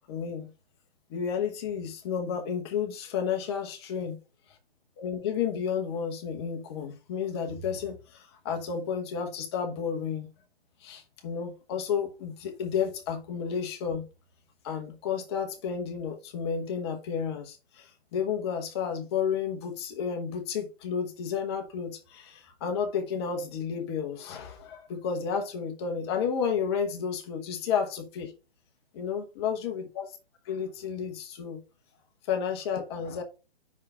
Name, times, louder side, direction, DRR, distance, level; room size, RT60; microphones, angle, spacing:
voice 1, 0.1-0.5 1.1-4.2 5.0-10.3 10.8-14.1 14.6-28.3 28.9-30.1 30.4-31.6 32.3-33.2, left 7 dB, 25° left, 1.0 m, -31 dB
5.7 x 4.8 x 5.4 m
hypercardioid pair, 150°, 31 cm